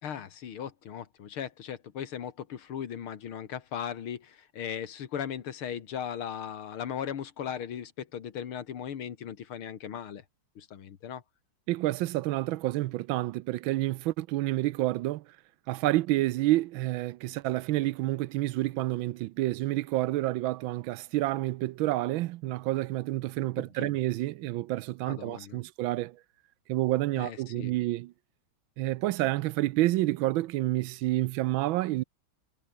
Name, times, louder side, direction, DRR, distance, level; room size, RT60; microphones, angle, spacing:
voice 1, 0.0-10.2 10.6-11.2 23.8-23.9 25.1-25.6 27.2-27.7, left 8 dB, 90° left, 2.5 m, -38 dB
voice 2, 11.7-15.2 15.7-26.2 26.7-28.1 28.8-32.0, right 16 dB, 75° right, 1.3 m, -29 dB
omnidirectional pair, 2.3 m